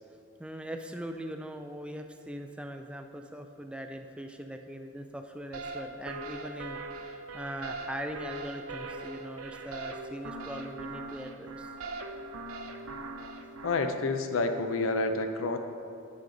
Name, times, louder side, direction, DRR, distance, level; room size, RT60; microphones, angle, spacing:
voice 1, 0.4-11.7, right 1 dB, 5° right, 5 dB, 0.3 m, -41 dB
sound 1, 5.5-13.9, right 2 dB, 75° right, 0.5 m, -41 dB
voice 2, 13.6-15.6, left 3 dB, 70° left, 7 dB, 0.5 m, -29 dB
10.5 x 5.1 x 3.9 m, 2.6 s
head